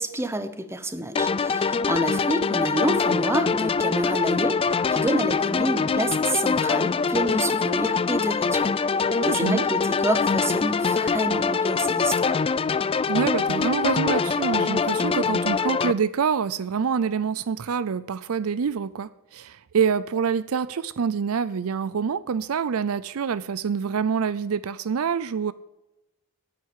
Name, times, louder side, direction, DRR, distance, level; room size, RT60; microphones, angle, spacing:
voice 1, 0.0-4.6 4.9-12.4, right 1 dB, 10° right, 0.9 m, -28 dB
sound 1, 1.2-15.9, left 5 dB, 25° left, 0.3 m, -24 dB
voice 2, 9.1-9.6 13.1-25.5, right 6 dB, 65° right, 0.4 m, -26 dB
9.6 x 9.3 x 8.3 m
head